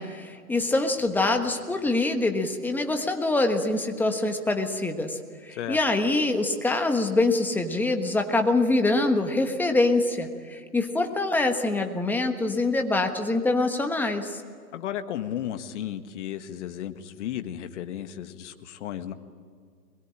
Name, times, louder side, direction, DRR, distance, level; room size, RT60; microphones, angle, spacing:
voice 1, 0.0-14.4, left 2 dB, 5° left, 5 dB, 1.3 m, -25 dB
voice 2, 14.7-19.1, left 10 dB, 50° left, 8 dB, 1.7 m, -34 dB
23.0 x 21.5 x 8.9 m, 2.1 s
hypercardioid pair, 135°, 47 cm